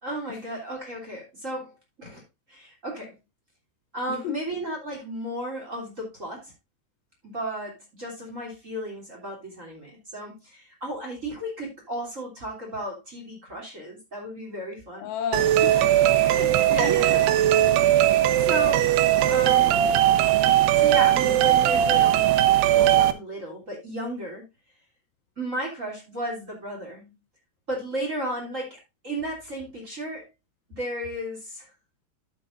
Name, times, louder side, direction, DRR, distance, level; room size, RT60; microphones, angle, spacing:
voice 1, 0.0-1.7 2.0-2.2 2.5-3.1 3.9-6.5 7.2-15.1 16.7-17.2 17.9-20.0 20.8-22.3 22.7-24.4 25.4-27.1 27.7-30.3 30.7-31.7, right 1 dB, 20° right, 2.8 m, -34 dB
voice 2, 4.1-4.4 15.0-17.8, left 9 dB, 85° left, 3.4 m, -34 dB
sound 1, 15.3-23.1, right 12 dB, 85° right, 2.8 m, -19 dB
12.0 x 7.5 x 2.6 m
omnidirectional pair, 4.8 m